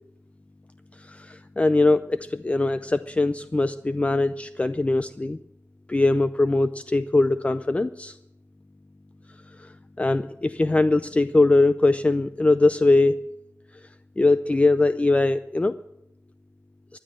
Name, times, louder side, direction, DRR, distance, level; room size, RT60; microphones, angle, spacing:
voice 1, 1.0-5.4 5.9-8.2 9.6-9.7 10.0-13.1 14.2-15.7, left 2 dB, 25° left, 12 dB, 0.4 m, -21 dB
15.5 x 10.5 x 6.3 m, 0.83 s
wide cardioid pair, 65°, 5 cm